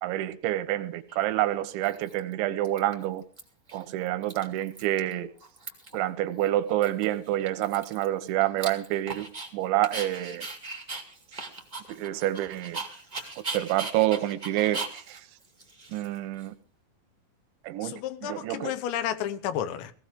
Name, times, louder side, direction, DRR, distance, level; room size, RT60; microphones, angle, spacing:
voice 1, 0.0-3.2 3.7-5.3 5.9-9.3 9.5-10.5 11.9-12.8 13.5-15.2 15.9-16.5 17.6-17.9 18.2-18.7, right 14 dB, 85° right, 3.3 m, -28 dB
Dog, 1.1-1.2 1.8-2.3 2.6-3.4 3.7-3.8 4.1-5.1 5.4-6.0 6.4-6.5 6.8-9.5 9.8-16.4, right 3 dB, 30° right, 0.8 m, -39 dB
voice 2, 17.8-19.9, left 10 dB, 80° left, 3.3 m, -31 dB
19.0 x 16.0 x 3.6 m
omnidirectional pair, 5.1 m